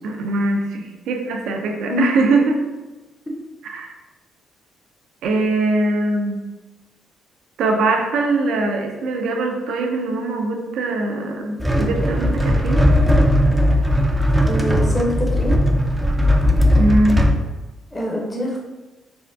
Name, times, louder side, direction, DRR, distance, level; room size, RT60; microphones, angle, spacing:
voice 1, 0.0-2.6 3.6-3.9 5.2-6.4 7.6-12.8 16.8-17.2, right 2 dB, 80° right, 3 dB, 0.4 m, -21 dB
sound 1, 11.6-17.4, equal, 10° right, 0.4 m, -17 dB
voice 2, 14.5-15.6 17.9-18.6, left 1 dB, 20° left, -2 dB, 0.7 m, -24 dB
3.4 x 2.1 x 2.6 m, 1.1 s
cardioid pair, 75°, 0 cm